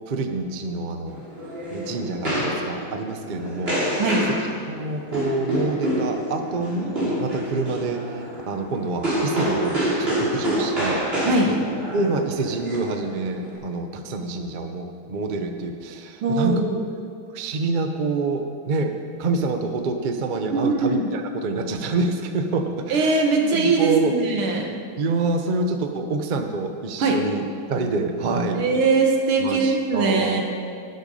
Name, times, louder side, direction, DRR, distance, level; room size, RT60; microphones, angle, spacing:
voice 1, 0.1-1.2 1.7-2.3 2.6-4.0 4.7-11.0 11.5-11.6 11.9-16.5 17.3-18.9 19.2-24.2 24.5-24.6 25.0-27.4 27.7-28.6 29.4-30.4, right 3 dB, 70° right, 5 dB, 0.4 m, -27 dB
sound 1, 1.1-13.5, equal, 25° right, 3.3 m, -27 dB
voice 2, 16.2-16.8 20.5-21.1 22.9-24.7 27.0-27.2 28.5-30.4, right 3 dB, 85° right, 2 dB, 2.3 m, -21 dB
16.0 x 8.0 x 5.5 m, 2.3 s
omnidirectional pair, 2.3 m